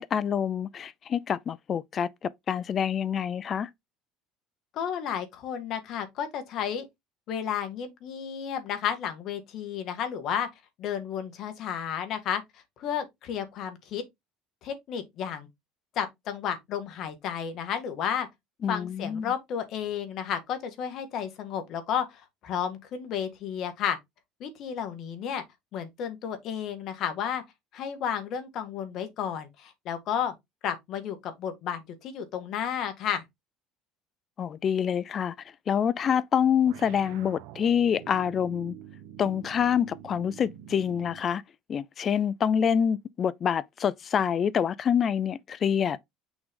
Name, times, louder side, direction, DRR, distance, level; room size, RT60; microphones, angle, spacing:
voice 1, 0.0-3.7 18.6-19.3 34.4-35.3 35.7-38.7 39.2-41.4 41.7-46.0, left 8 dB, 40° left, 0.4 m, -26 dB
voice 2, 4.7-6.9 7.3-10.5 10.8-14.0 14.6-15.5 16.0-18.3 18.7-24.0 24.4-25.4 25.7-27.4 27.7-30.3 30.6-33.2, left 8 dB, 55° left, 2.1 m, -32 dB
sound 1, 36.6-41.4, right 10 dB, 80° right, 1.3 m, -46 dB
6.2 x 4.6 x 3.8 m
cardioid pair, 120°, 0 cm